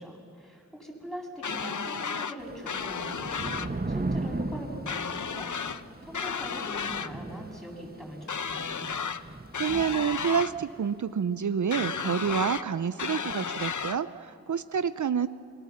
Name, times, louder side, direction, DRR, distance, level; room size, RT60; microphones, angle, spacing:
voice 1, 0.0-5.5 6.0-8.9, equal, ahead, 0 dB, 7.0 m, -41 dB
sound 1, 1.4-2.4 2.7-3.7 4.9-5.8 6.1-7.1 8.3-9.2 9.5-10.5 11.7-12.6 13.0-14.0, left 6 dB, 70° left, 0.8 m, -33 dB
Thunder / Rain, 2.4-10.8, right 2 dB, 30° right, 1.2 m, -37 dB
voice 2, 9.5-15.3, right 7 dB, 70° right, 13 dB, 0.6 m, -28 dB
28.5 x 23.5 x 7.3 m, 2.6 s
wide cardioid pair, 50°, 31 cm